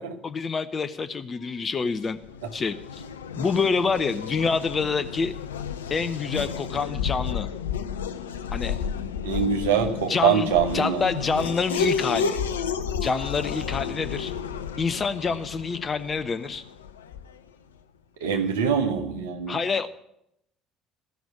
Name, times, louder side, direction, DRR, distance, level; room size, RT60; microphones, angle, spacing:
voice 1, 0.2-2.2 2.5-3.0 3.4-5.3 5.9-7.5 8.5-8.8 10.1-12.4 13.0-14.3 14.8-16.6 19.5-19.9, left 5 dB, 30° left, 10 dB, 0.7 m, -27 dB
Race car auto racing / Accelerating revving vroom, 1.9-17.5, left 6 dB, 80° left, 0.5 m, -32 dB
voice 2, 9.2-11.0 18.2-19.6, right 7 dB, 70° right, 5 dB, 1.2 m, -24 dB
14.0 x 6.1 x 9.8 m, 0.78 s
figure-of-eight pair, 55°, 0 cm